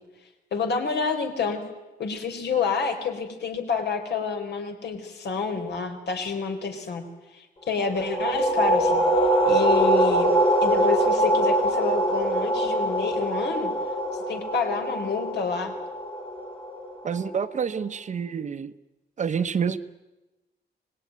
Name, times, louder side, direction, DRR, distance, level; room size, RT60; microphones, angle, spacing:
voice 1, 0.5-1.6 2.0-7.0 7.3-9.0 9.4-13.7 14.3-15.7, left 5 dB, 75° left, 5 dB, 4.0 m, -28 dB
sound 1, 7.9-17.3, right 1 dB, 30° left, 2.3 m, -23 dB
voice 2, 17.0-18.7 19.2-19.8, right 6 dB, 45° right, 11 dB, 0.9 m, -28 dB
25.0 x 20.0 x 9.4 m, 1.1 s
wide cardioid pair, 175°, 18 cm